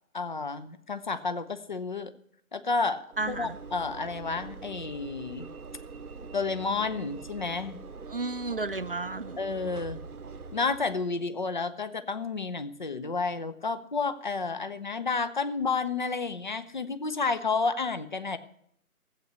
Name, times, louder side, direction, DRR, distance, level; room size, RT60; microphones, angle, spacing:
voice 1, 0.1-2.1 2.5-5.5 6.3-7.8 9.4-10.0 10.5-18.4, left 4 dB, 35° left, 12 dB, 0.6 m, -31 dB
Train / Engine / Alarm, 3.1-11.4, right 4 dB, 90° right, 0.9 m, -44 dB
voice 2, 3.2-3.6 8.1-9.4, right 3 dB, 40° right, 12 dB, 0.5 m, -32 dB
14.5 x 8.2 x 6.9 m, 0.70 s
figure-of-eight pair, 155°, 43 cm